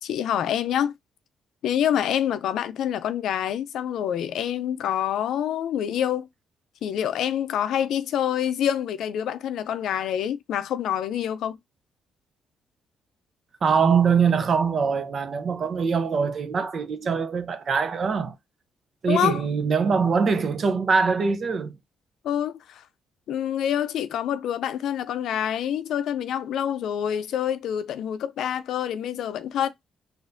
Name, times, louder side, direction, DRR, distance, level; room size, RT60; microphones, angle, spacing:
voice 1, 0.0-0.9 1.6-6.3 6.8-11.6 19.1-19.4 22.2-22.8 23.3-29.7, left 10 dB, 75° left, 0.5 m, -26 dB
voice 2, 13.6-18.3 19.0-21.8, right 5 dB, 50° right, 0.6 m, -23 dB
4.1 x 2.6 x 2.5 m
cardioid pair, 90°, 0 cm